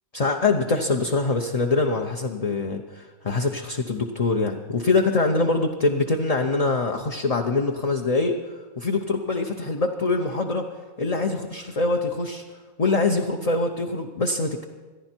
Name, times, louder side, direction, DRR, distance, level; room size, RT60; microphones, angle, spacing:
voice 1, 0.1-8.4 8.8-10.7 11.0-12.4 12.8-14.6, left 3 dB, 35° left, 2 dB, 0.8 m, -24 dB
26.0 x 10.5 x 4.5 m, 1.3 s
omnidirectional pair, 1.4 m